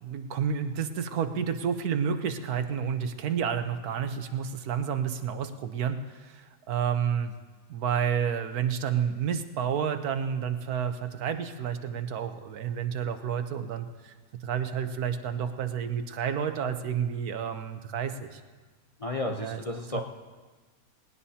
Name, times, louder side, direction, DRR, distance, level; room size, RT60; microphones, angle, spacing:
voice 1, 0.0-7.3 7.7-14.1 14.4-18.4 19.3-19.6 19.9-20.0, right 7 dB, 85° right, 8 dB, 1.4 m, -30 dB
voice 2, 19.0-20.0, left 2 dB, 35° left, 1 dB, 0.6 m, -32 dB
19.0 x 18.0 x 2.8 m, 1.4 s
omnidirectional pair, 1.6 m